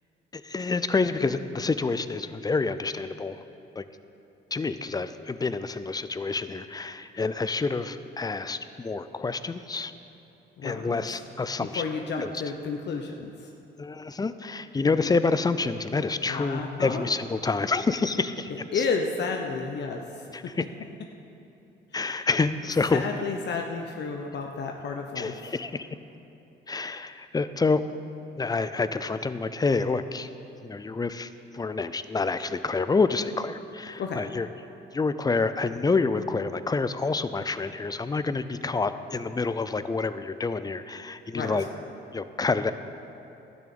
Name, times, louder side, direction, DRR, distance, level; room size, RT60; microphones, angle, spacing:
voice 1, 0.4-3.4 3.8-3.9 4.5-9.9 10.6-11.8 12.2-12.3 13.8-18.8 20.3-20.6 21.9-23.0 25.2-25.9 26.7-27.8 28.4-30.3 30.6-34.5 34.9-41.6 42.1-42.7, left 4 dB, 20° left, 12 dB, 0.5 m, -28 dB
voice 2, 10.6-11.2 11.7-13.5 14.8-15.1 16.2-17.0 18.5-20.0 20.4-20.5 21.9-22.3 23.0-25.3 34.0-34.2 41.3-41.5, left 5 dB, 60° left, 2 dB, 0.9 m, -32 dB
12.5 x 6.3 x 8.6 m, 2.8 s
cardioid pair, 90°, 20 cm